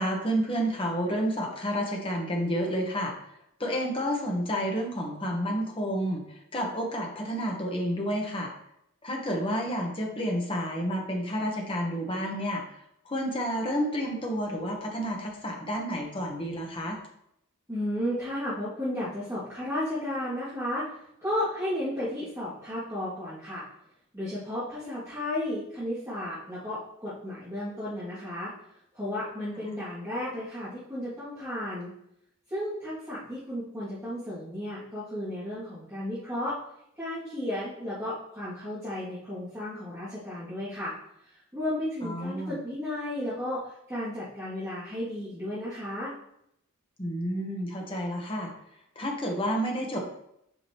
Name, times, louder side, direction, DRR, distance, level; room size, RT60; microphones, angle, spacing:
voice 1, 0.0-3.1 3.6-6.2 6.5-8.5 9.0-12.6 13.0-17.0 42.0-42.6 47.0-48.5 49.0-50.0, equal, 25° left, 0 dB, 1.3 m, -30 dB
voice 2, 17.7-20.9 21.2-23.6 24.1-28.5 28.9-31.9 32.5-36.6 37.0-40.9 41.5-43.6 43.9-46.1, left 1 dB, 15° right, -13 dB, 2.4 m, -33 dB
8.1 x 5.2 x 3.0 m, 0.77 s
head